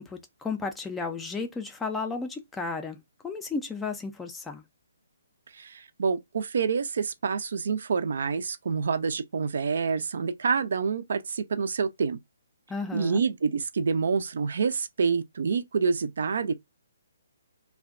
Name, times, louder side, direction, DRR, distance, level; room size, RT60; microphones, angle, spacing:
voice 1, 0.0-3.0 3.2-4.6 12.7-13.2, left 4 dB, 10° left, 0.4 m, -33 dB
voice 2, 5.5-12.2 12.9-16.5, right 5 dB, 60° right, 0.4 m, -27 dB
2.5 x 2.2 x 2.4 m
figure-of-eight pair, 135°, 0 cm